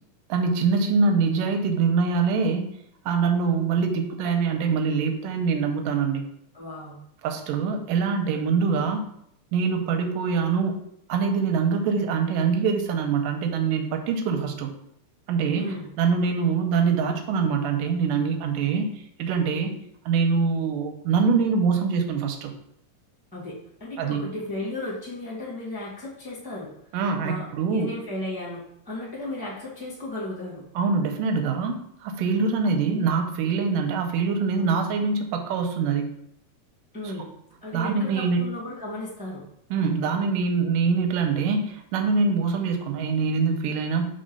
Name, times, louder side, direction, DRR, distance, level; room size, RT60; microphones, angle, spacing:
voice 1, 0.3-2.7 3.1-6.2 7.2-9.0 9.5-10.7 11.1-14.7 15.3-19.8 20.1-22.5 24.0-24.2 26.9-27.9 30.8-36.1 37.0-37.1 37.7-38.4 39.7-44.1, right 5 dB, 90° right, 5 dB, 2.3 m, -24 dB
voice 2, 6.5-7.0 15.6-15.9 23.3-26.7 27.2-30.6 36.9-37.3 37.6-39.4, left 1 dB, 5° right, -7 dB, 0.7 m, -35 dB
5.3 x 3.5 x 5.4 m, 0.72 s
omnidirectional pair, 3.8 m